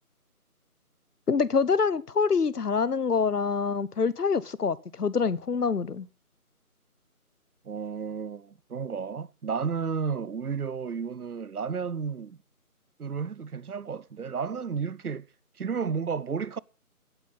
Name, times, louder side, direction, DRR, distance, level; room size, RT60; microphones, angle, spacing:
voice 1, 1.3-6.1, left 5 dB, 85° left, 1.0 m, -25 dB
voice 2, 7.6-12.4 13.0-15.3 15.6-16.6, right 6 dB, 75° right, 0.8 m, -32 dB
16.0 x 9.0 x 5.6 m
figure-of-eight pair, 180°, 45 cm